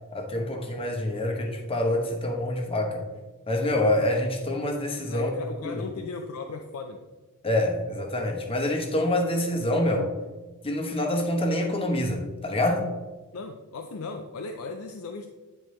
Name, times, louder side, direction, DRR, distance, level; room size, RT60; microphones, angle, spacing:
voice 1, 0.1-3.1 3.5-5.3 5.6-5.8 7.4-10.1 10.6-12.9, left 1 dB, 25° left, 3 dB, 0.9 m, -26 dB
voice 2, 5.1-7.1 13.3-15.3, left 4 dB, 75° left, 4 dB, 0.5 m, -37 dB
9.9 x 4.5 x 3.1 m, 1.2 s
head